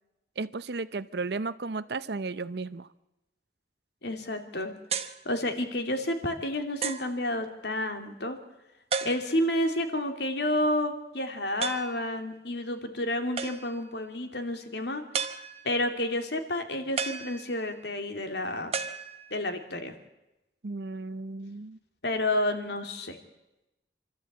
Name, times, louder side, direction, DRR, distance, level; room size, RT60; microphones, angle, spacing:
voice 1, 0.4-2.9 20.6-21.8, right 3 dB, 60° right, 16 dB, 0.6 m, -34 dB
voice 2, 4.0-4.7 5.2-8.4 9.0-15.0 15.6-18.7 19.3-19.9 22.0-23.2, left 1 dB, 70° left, 6 dB, 2.4 m, -30 dB
sound 1, 4.9-5.2 6.0-6.1 6.8-7.2 8.9-9.5 11.6-12.0 13.4-13.9 15.1-15.8 17.0-17.8 18.7-19.6, right 6 dB, 35° right, 1.0 m, -34 dB
26.5 x 13.5 x 8.5 m, 0.96 s
head